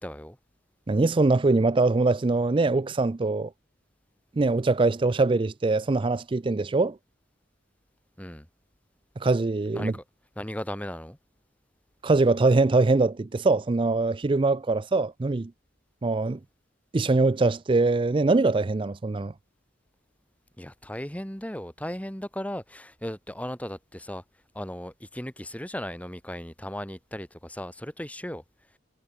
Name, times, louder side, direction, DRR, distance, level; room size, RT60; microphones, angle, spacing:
voice 1, 0.0-0.4 8.2-8.5 9.7-10.0 10.4-11.2 20.6-24.2 24.5-28.4, equal, 10° left, 2.9 m, -36 dB
voice 2, 0.9-3.5 4.4-7.0 9.2-9.9 12.0-15.5 16.0-16.4 16.9-19.3, right 3 dB, 30° right, 0.4 m, -23 dB
head